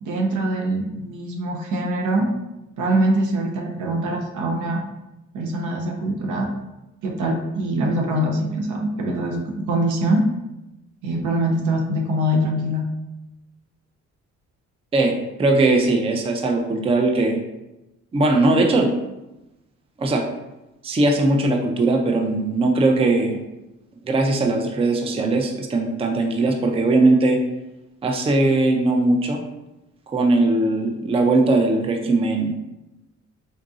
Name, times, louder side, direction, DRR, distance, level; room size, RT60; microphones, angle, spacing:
voice 1, 0.0-2.3 2.8-4.8 5.3-6.5 7.0-10.3 11.0-12.8, right 1 dB, 75° right, 1 dB, 0.7 m, -23 dB
voice 2, 15.4-17.4 18.1-18.9 20.0-20.2 20.8-23.4 24.0-27.4 28.0-29.4 30.1-32.5, right 2 dB, 20° right, 2 dB, 0.4 m, -19 dB
3.9 x 2.6 x 2.4 m, 0.97 s
cardioid pair, 90°, 30 cm